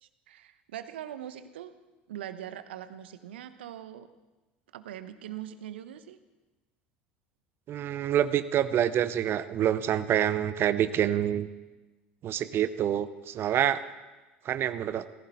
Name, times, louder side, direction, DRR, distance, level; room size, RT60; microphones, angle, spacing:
voice 1, 0.0-1.7 2.1-4.1 4.7-6.2, right 11 dB, 70° right, 12 dB, 1.0 m, -42 dB
voice 2, 7.7-11.5 12.2-13.8 14.4-15.0, right 10 dB, 40° right, 14 dB, 0.7 m, -27 dB
18.0 x 15.5 x 4.2 m, 1.1 s
figure-of-eight pair, 70°, 6 cm